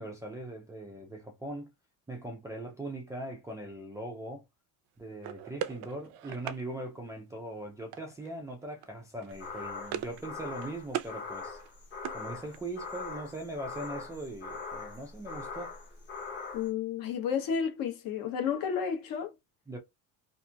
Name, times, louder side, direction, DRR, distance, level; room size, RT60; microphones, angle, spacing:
voice 1, 0.0-1.7 2.1-4.4 5.0-11.6 12.1-15.7 19.7-19.8, right 1 dB, 10° right, 0.3 m, -40 dB
sound 1, 5.2-6.6 7.9-8.3 8.6-8.9 9.2-10.3 10.5-11.2 11.5-12.8, right 10 dB, 75° right, 0.5 m, -40 dB
sound 2, 9.3-16.7, left 4 dB, 25° left, 0.8 m, -42 dB
voice 2, 16.5-19.3, left 7 dB, 55° left, 0.9 m, -31 dB
2.9 x 2.5 x 2.3 m
cardioid pair, 165°, 40 cm